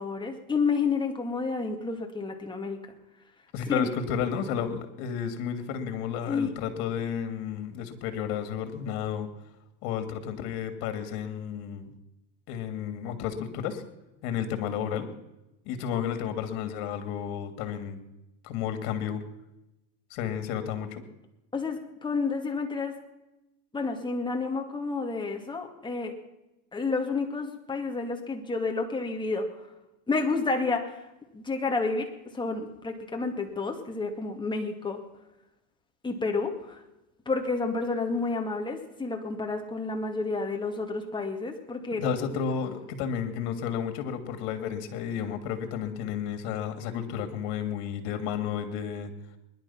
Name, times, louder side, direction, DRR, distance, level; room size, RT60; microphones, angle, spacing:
voice 1, 0.0-2.8 3.7-3.9 6.3-6.5 21.5-23.0 23.7-26.1 26.7-29.7 30.1-31.0 31.3-35.0 36.0-36.8 37.3-42.0, left 4 dB, 10° left, 2 dB, 2.3 m, -30 dB
voice 2, 3.5-9.3 9.8-11.9 12.5-13.8 14.2-15.1 15.7-18.0 18.4-19.2 20.1-21.0 42.0-49.1, left 8 dB, 60° left, 9 dB, 2.6 m, -32 dB
21.0 x 11.0 x 5.8 m, 0.94 s
supercardioid pair, 130°, 46 cm